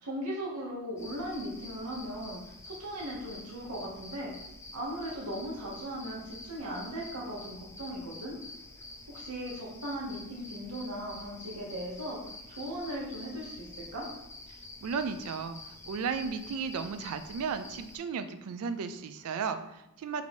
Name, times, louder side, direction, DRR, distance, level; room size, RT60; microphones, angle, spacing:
voice 1, 0.0-2.4 2.6-4.3 4.7-8.4 9.1-14.1, equal, 85° right, -4 dB, 1.0 m, -38 dB
sound 1, 1.0-18.0, left 2 dB, 10° left, 0.3 m, -48 dB
voice 2, 14.8-20.2, right 5 dB, 70° right, 10 dB, 0.3 m, -35 dB
3.0 x 2.7 x 4.3 m, 0.85 s
head